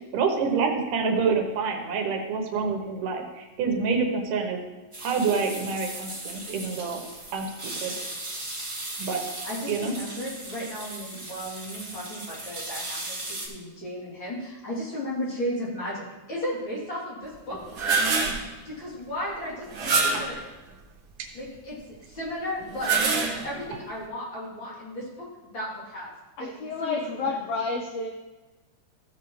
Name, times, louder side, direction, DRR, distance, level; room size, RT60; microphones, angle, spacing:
voice 1, 0.1-4.6 5.0-7.0 7.3-7.9 9.0-9.2 9.7-10.0 20.1-20.2 21.2-21.3, right 5 dB, 85° right, 3 dB, 2.6 m, -27 dB
sound 1, 4.9-13.5, right 1 dB, 20° right, 0.8 m, -37 dB
voice 2, 9.4-13.1 13.4-16.0 16.3-17.6 18.7-20.4 21.3-21.7 22.0-25.3 25.5-26.1 26.4-26.5 26.8-27.4, equal, 40° left, -7 dB, 3.6 m, -34 dB
sound 2, 17.5-18.5 19.7-20.4 22.6-23.7, right 4 dB, 50° right, 1.7 m, -25 dB
voice 3, 26.4-28.1, left 4 dB, 80° left, 2 dB, 1.5 m, -30 dB
14.5 x 7.5 x 3.2 m, 1.2 s
omnidirectional pair, 3.6 m